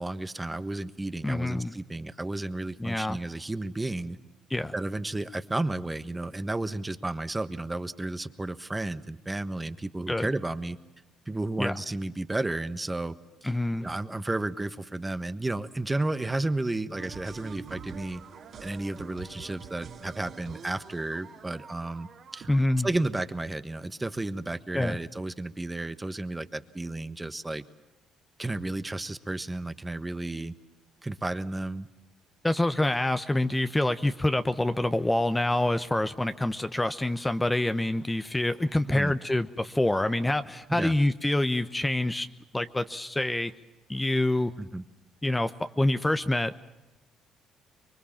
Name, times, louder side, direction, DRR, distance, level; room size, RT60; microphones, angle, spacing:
voice 1, 0.0-4.2 4.7-10.8 11.3-13.1 13.4-13.5 13.8-18.2 18.6-22.5 22.8-27.6 28.4-30.5 31.0-31.9 38.9-39.1 40.7-40.9 44.6-44.8, right 2 dB, 15° right, 12 dB, 1.3 m, -32 dB
voice 2, 1.2-1.7 2.8-3.2 4.5-4.7 10.1-10.3 11.6-11.8 13.4-13.9 22.5-22.9 24.7-25.0 32.4-42.3 42.5-43.5 43.9-44.5 45.2-46.5, left 1 dB, 15° left, 10 dB, 1.0 m, -26 dB
sound 1, 17.0-22.6, right 6 dB, 55° right, 3.0 m, -45 dB
25.0 x 22.5 x 7.3 m, 1.0 s
supercardioid pair, 60°, 0 cm